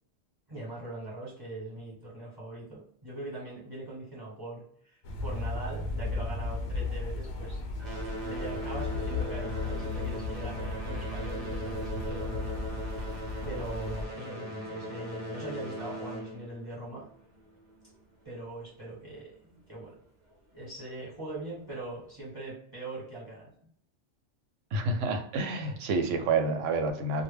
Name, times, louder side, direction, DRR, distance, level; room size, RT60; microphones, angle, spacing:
voice 1, 0.5-7.6 8.2-12.6 13.4-17.1 18.2-20.0 20.5-23.5, right 2 dB, 20° right, -5 dB, 1.0 m, -41 dB
sound 1, 5.0-14.1, left 3 dB, 70° left, 0.8 m, -35 dB
sound 2, 6.0-7.3 7.6-17.9 18.8-18.9 19.6-19.7 20.3-20.4, equal, 50° right, 0.6 m, -40 dB
voice 2, 24.7-27.2, right 3 dB, 90° right, 5 dB, 0.9 m, -28 dB
2.1 x 2.0 x 3.2 m, 0.63 s
omnidirectional pair, 1.2 m